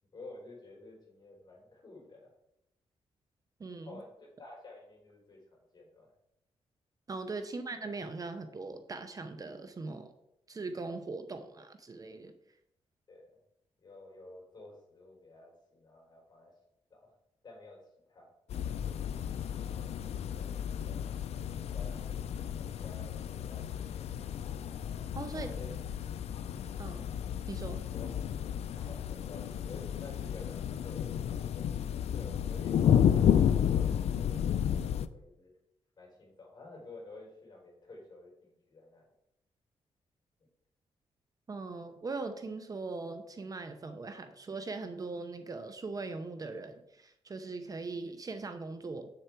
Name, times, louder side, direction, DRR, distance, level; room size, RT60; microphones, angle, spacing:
voice 1, 0.1-2.3 3.8-6.1 13.1-13.4 13.8-16.5 16.9-17.1 17.4-17.8 18.1-18.3 18.7-18.9 19.7-20.0 20.3-21.2 21.7-24.2 25.4-25.7 27.9-28.1 28.8-31.6 32.1-35.5 36.0-39.0, left 2 dB, 40° left, -1 dB, 3.9 m, -51 dB
voice 2, 3.6-4.0 7.1-10.1 10.5-12.3 25.1-25.5 26.8-27.0 27.5-27.8 41.5-49.1, right 3 dB, 35° right, 8 dB, 0.7 m, -40 dB
sound 1, 18.5-35.1, left 9 dB, 75° left, 0.4 m, -32 dB
8.0 x 6.8 x 4.5 m, 0.80 s
cardioid pair, 110°, 11 cm